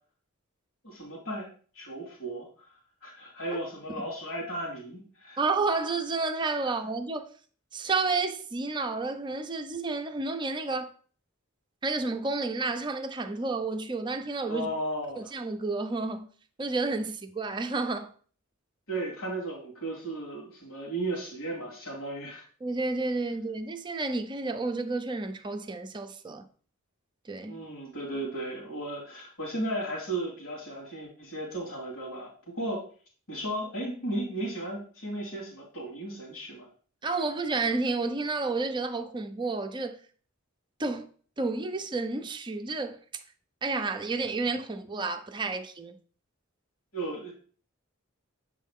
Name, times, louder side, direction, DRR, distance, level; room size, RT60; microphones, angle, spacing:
voice 1, 0.8-1.5 1.7-2.5 3.0-5.4 14.5-15.3 18.9-22.4 27.5-32.9 33.3-36.7 46.9-47.3, right 1 dB, 90° left, 2.4 m, -35 dB
voice 2, 5.4-7.3 7.7-10.9 11.8-14.7 15.2-16.3 16.6-18.1 22.6-26.4 27.3-27.6 37.0-40.0 40.8-41.1 41.4-43.0 43.6-46.0, right 3 dB, 20° right, 0.5 m, -30 dB
7.4 x 3.8 x 3.6 m
head